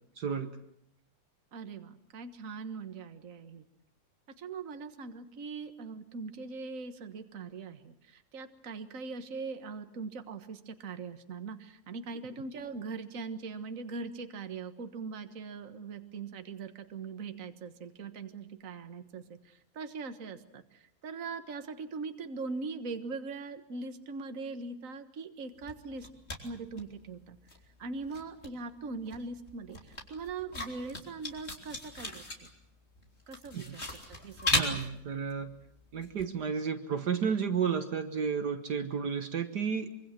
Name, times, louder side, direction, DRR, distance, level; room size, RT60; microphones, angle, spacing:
voice 1, 0.2-0.6 33.5-33.8 34.5-35.5 35.9-39.9, right 6 dB, 60° right, 7 dB, 1.9 m, -32 dB
voice 2, 1.5-3.6 4.4-26.1 26.4-27.4 27.8-32.5 33.3-34.8 35.1-35.2, right 4 dB, 45° right, 8 dB, 1.8 m, -41 dB
sound 1, 25.6-27.2 27.5-36.2, left 2 dB, 35° left, 3.8 m, -37 dB
25.0 x 24.5 x 7.6 m, 0.71 s
omnidirectional pair, 2.0 m